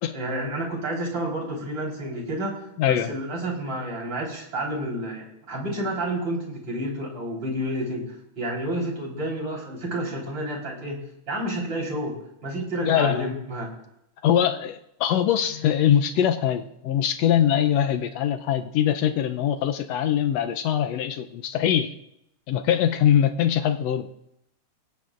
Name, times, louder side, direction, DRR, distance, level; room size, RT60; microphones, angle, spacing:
voice 1, 0.1-2.6 2.9-8.1 8.4-11.0 11.3-13.7, right 1 dB, 35° right, -1 dB, 4.7 m, -30 dB
voice 2, 2.8-3.2 12.8-13.3 14.2-21.9 22.5-24.1, left 10 dB, 85° left, 7 dB, 1.4 m, -22 dB
27.5 x 17.0 x 2.5 m, 0.80 s
omnidirectional pair, 3.8 m